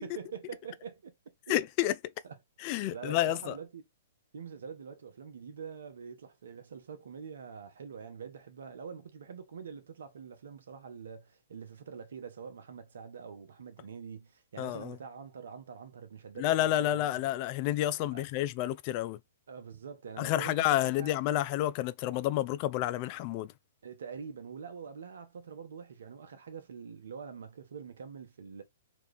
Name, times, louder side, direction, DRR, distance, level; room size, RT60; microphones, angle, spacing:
voice 1, 0.0-1.5 2.2-2.4 2.9-3.8 4.3-17.2 18.1-18.2 19.5-21.1 23.8-28.6, right 6 dB, 70° right, 0.8 m, -45 dB
voice 2, 1.5-2.0 2.6-3.6 14.6-15.0 16.4-19.2 20.2-23.5, left 14 dB, 40° left, 0.3 m, -30 dB
3.0 x 2.4 x 3.3 m
hypercardioid pair, 125°, 0 cm